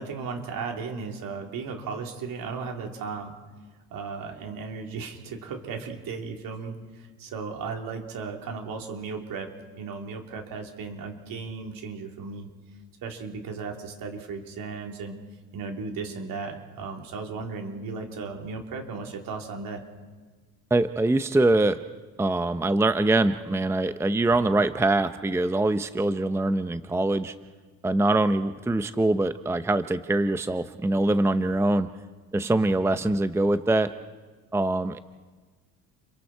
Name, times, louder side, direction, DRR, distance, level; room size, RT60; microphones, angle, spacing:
voice 1, 0.0-3.3 3.9-12.5 13.0-15.2 15.5-19.8, right 4 dB, 60° right, 2 dB, 4.0 m, -35 dB
voice 2, 20.7-21.8 22.2-27.3 27.8-31.9 32.3-33.9 34.5-35.0, right 2 dB, 5° right, 11 dB, 0.7 m, -23 dB
30.0 x 23.5 x 4.6 m, 1.4 s
supercardioid pair, 95°, 38 cm